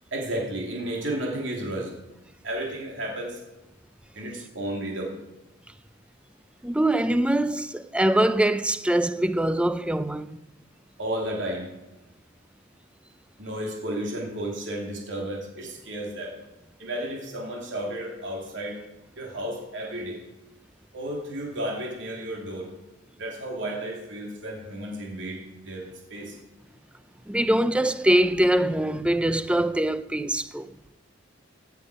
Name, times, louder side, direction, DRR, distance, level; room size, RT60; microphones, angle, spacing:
voice 1, 0.1-1.9 2.4-3.4 4.1-5.1 11.0-11.7 13.4-16.4 16.8-18.8 19.2-20.2 20.9-22.7 23.2-26.4, right 1 dB, 70° right, 3.0 m, -33 dB
voice 2, 6.6-10.4 27.3-30.7, right 1 dB, 5° right, 0.5 m, -23 dB
16.5 x 8.0 x 5.0 m
head